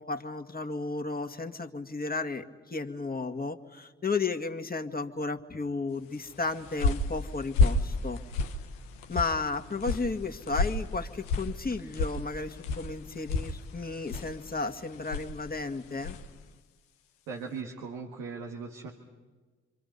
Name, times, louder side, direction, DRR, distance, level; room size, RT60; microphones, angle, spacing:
voice 1, 0.0-8.2 9.1-16.2, left 3 dB, 25° left, 4 dB, 1.9 m, -33 dB
sound 1, 6.3-16.4, left 3 dB, 90° left, 1.0 m, -32 dB
voice 2, 17.3-18.9, right 5 dB, 85° right, 1 dB, 1.8 m, -39 dB
28.5 x 24.5 x 5.5 m, 1.3 s
hypercardioid pair, 40°, 33 cm